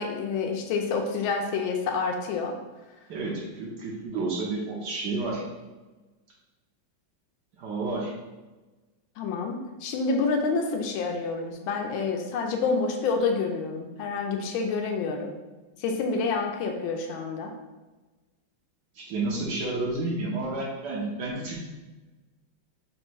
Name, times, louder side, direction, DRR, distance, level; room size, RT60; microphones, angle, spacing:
voice 1, 0.0-2.6 9.2-15.3 15.8-17.5, left 4 dB, 80° left, 3 dB, 1.4 m, -28 dB
voice 2, 3.1-5.4 7.6-8.1 18.9-21.6, right 3 dB, 70° right, -3 dB, 1.2 m, -30 dB
4.0 x 2.1 x 4.5 m, 1.2 s
omnidirectional pair, 2.2 m